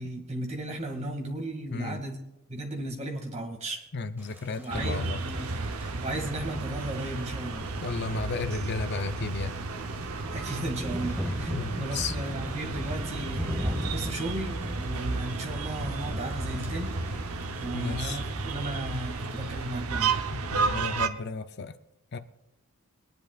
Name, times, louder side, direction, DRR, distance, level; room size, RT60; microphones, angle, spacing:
voice 1, 0.0-2.2 2.5-3.8 4.6-7.6 10.3-17.0 17.6-20.1, right 1 dB, 30° right, 1 dB, 2.1 m, -35 dB
voice 2, 1.7-2.0 3.9-5.2 7.8-9.5 11.5-12.2 17.7-18.2 20.3-21.8 22.1-22.2, left 4 dB, 50° left, 10 dB, 0.6 m, -33 dB
Thunder / Rain, 4.2-19.8, equal, 10° right, 1.6 m, -40 dB
sound 1, 4.7-21.1, right 3 dB, 85° right, 0.8 m, -33 dB
23.0 x 10.5 x 2.4 m, 0.93 s
head